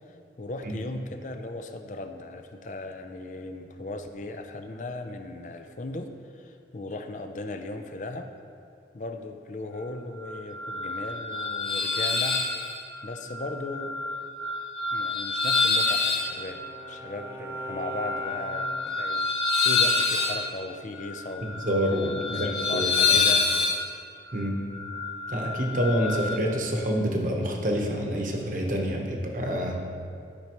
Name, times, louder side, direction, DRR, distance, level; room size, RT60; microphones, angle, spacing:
voice 1, 0.1-8.3 8.9-12.4 13.0-13.9 14.9-21.6 22.3-23.4, left 2 dB, 45° left, 6 dB, 0.5 m, -37 dB
sound 1, 10.2-26.4, left 4 dB, 80° left, 1.9 m, -28 dB
Bowed string instrument, 15.4-19.0, right 1 dB, 15° right, 0.3 m, -43 dB
voice 2, 21.6-23.2 24.3-24.6 25.3-29.8, equal, 45° right, 1 dB, 1.0 m, -27 dB
12.5 x 5.8 x 3.0 m, 2.4 s
head